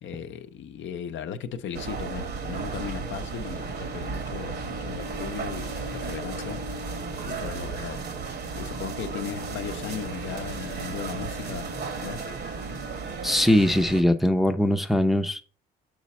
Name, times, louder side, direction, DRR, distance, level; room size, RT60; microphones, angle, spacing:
voice 1, 0.0-6.6 7.3-8.0 8.5-11.7 12.0-12.2, left 8 dB, 70° left, 0.7 m, -37 dB
sound 1, 1.7-14.0, right 4 dB, 55° right, 1.0 m, -34 dB
voice 2, 13.2-15.4, left 1 dB, ahead, 0.5 m, -21 dB
6.2 x 4.8 x 4.2 m
cardioid pair, 90°, 20 cm